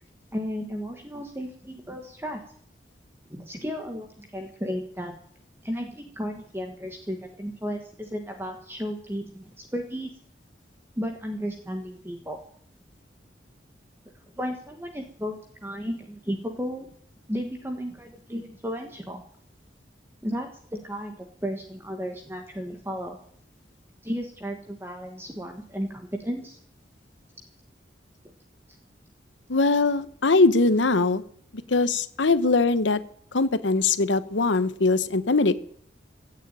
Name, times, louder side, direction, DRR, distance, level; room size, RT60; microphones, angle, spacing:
voice 1, 0.3-2.4 3.3-5.2 5.6-10.1 11.0-12.4 14.3-16.9 17.3-19.2 20.2-23.2 24.0-26.6 28.2-28.3, equal, 15° right, 4 dB, 1.4 m, -34 dB
voice 2, 29.5-31.2 31.7-33.0 33.3-35.5, left 3 dB, 90° left, 14 dB, 1.0 m, -21 dB
16.5 x 7.3 x 9.0 m, 0.62 s
head